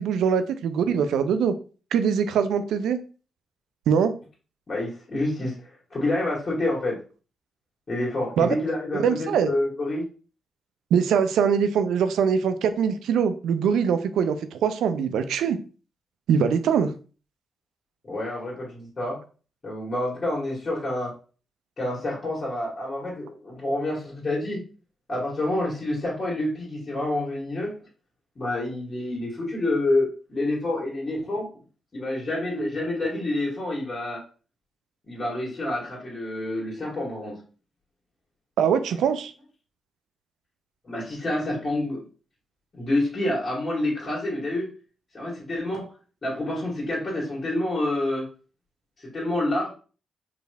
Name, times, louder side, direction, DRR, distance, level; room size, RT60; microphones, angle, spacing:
voice 1, 0.0-1.5 1.9-3.0 3.9-4.1 8.4-8.5 8.9-9.5 10.9-15.6 16.3-16.9 38.6-39.3, right 7 dB, 75° right, 10 dB, 0.4 m, -22 dB
voice 2, 4.7-5.6 5.9-7.0 7.9-10.0 18.0-19.2 19.6-21.1 21.8-24.6 25.1-27.7 28.4-31.5 31.9-34.2 35.0-37.4 40.8-42.1 42.8-44.7 45.1-45.9 46.2-48.3 49.0-49.7, left 1 dB, 45° left, -5 dB, 1.7 m, -28 dB
4.8 x 3.2 x 2.3 m, 0.36 s
hypercardioid pair, 40°, 0 cm